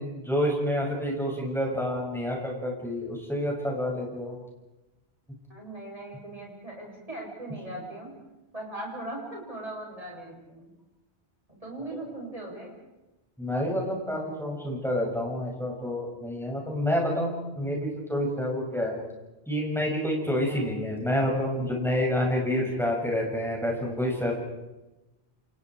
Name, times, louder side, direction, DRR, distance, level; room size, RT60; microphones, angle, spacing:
voice 1, 0.0-4.4 13.4-19.0 19.5-24.4, left 1 dB, ahead, -2 dB, 7.3 m, -28 dB
voice 2, 5.5-8.1 8.5-10.7 11.5-12.7 20.4-20.7, right 2 dB, 35° right, -2 dB, 7.9 m, -39 dB
29.0 x 28.5 x 5.0 m, 1.0 s
omnidirectional pair, 1.1 m